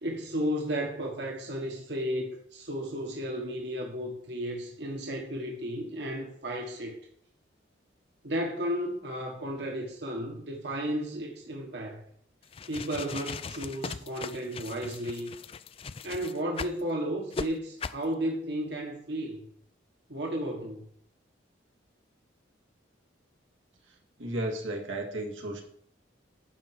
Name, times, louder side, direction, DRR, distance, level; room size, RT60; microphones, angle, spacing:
voice 1, 0.0-7.0 8.2-12.0 12.7-15.3 16.0-19.4 20.1-20.8, equal, 60° right, 0 dB, 1.4 m, -33 dB
sound 1, 12.4-16.8 17.3-17.5 17.8-18.0, left 5 dB, 30° left, 0.3 m, -38 dB
voice 2, 24.2-25.6, right 1 dB, 85° right, 1 dB, 1.8 m, -33 dB
10.5 x 4.5 x 6.5 m, 0.63 s
head